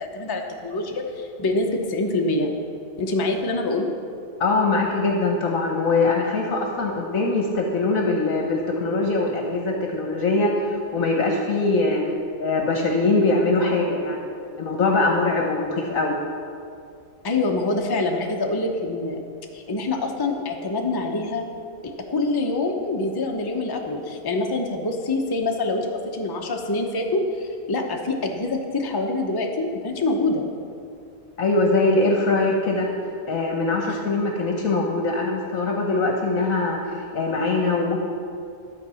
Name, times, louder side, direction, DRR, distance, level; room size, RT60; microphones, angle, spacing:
voice 1, 0.0-2.5 3.0-3.9 17.2-19.2 19.5-21.5 21.8-30.4 33.9-34.0, left 2 dB, 25° left, 2 dB, 0.6 m, -25 dB
voice 2, 4.4-12.0 12.4-14.2 14.6-16.2 31.4-32.9 33.3-38.0, left 3 dB, 65° left, 1 dB, 1.3 m, -22 dB
13.0 x 4.6 x 6.9 m, 2.4 s
omnidirectional pair, 1.6 m